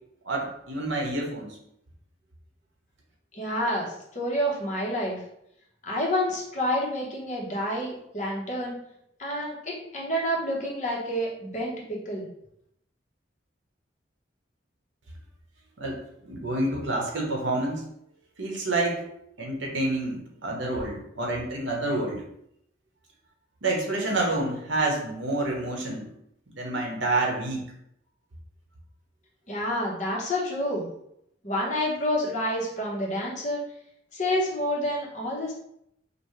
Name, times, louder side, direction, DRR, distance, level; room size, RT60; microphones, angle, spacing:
voice 1, 0.2-1.6 15.8-17.8 18.4-19.1 19.4-22.2 23.6-26.1 26.6-27.6, right 2 dB, 80° right, -1 dB, 1.1 m, -28 dB
voice 2, 3.3-5.2 5.8-8.8 9.2-12.3 29.5-30.9 31.4-33.6 34.1-35.5, equal, 40° left, -4 dB, 1.1 m, -28 dB
5.2 x 2.2 x 3.2 m, 0.75 s
head